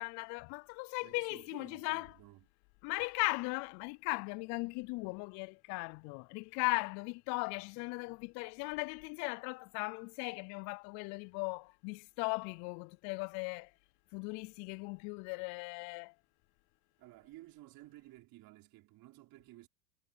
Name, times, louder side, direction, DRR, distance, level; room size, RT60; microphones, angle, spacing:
voice 1, 0.0-2.1 2.8-13.7 14.1-16.1, left 29 dB, 40° left, 0.4 m, -38 dB
voice 2, 1.0-2.5 17.0-19.7, right 17 dB, 45° right, 5.0 m, -55 dB
hypercardioid pair, 110°, 47 cm